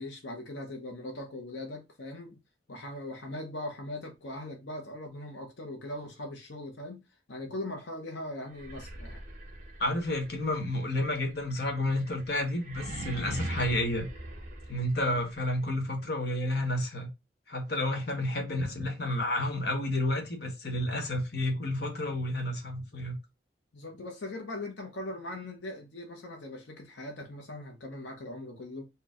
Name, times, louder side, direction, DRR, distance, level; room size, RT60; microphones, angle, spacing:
voice 1, 0.0-2.4 2.7-9.2 14.9-15.2 23.7-28.9, left 1 dB, 90° left, 0.8 m, -40 dB
sound 1, 8.5-15.4, right 1 dB, 45° right, 1.0 m, -42 dB
voice 2, 9.8-14.1 14.7-17.1 17.5-23.2, left 1 dB, 60° left, 1.1 m, -30 dB
4.4 x 2.2 x 3.6 m
head